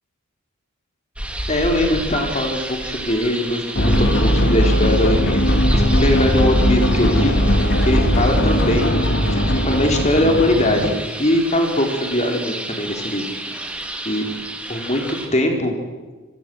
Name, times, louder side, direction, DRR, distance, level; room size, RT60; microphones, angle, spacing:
sound 1, 1.2-15.3, right 1 dB, 5° right, 3.1 m, -31 dB
voice 1, 1.5-5.4 5.7-9.0 9.3-13.3 14.1-15.8, left 1 dB, 30° left, 3 dB, 4.1 m, -21 dB
sound 2, 3.7-10.9, equal, 55° left, 2.7 m, -18 dB
27.5 x 22.5 x 7.9 m, 1.3 s
head